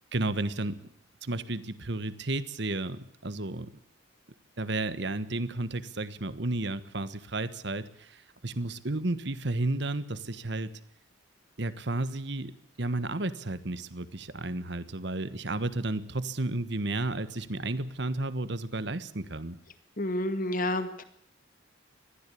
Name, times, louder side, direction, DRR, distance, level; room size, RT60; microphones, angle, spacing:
voice 1, 0.1-0.8 1.2-3.7 4.6-10.7 11.6-19.6, right 2 dB, 55° right, 14 dB, 1.3 m, -32 dB
voice 2, 20.0-21.0, left 1 dB, 40° left, 10 dB, 2.1 m, -29 dB
21.0 x 14.5 x 8.5 m, 0.72 s
head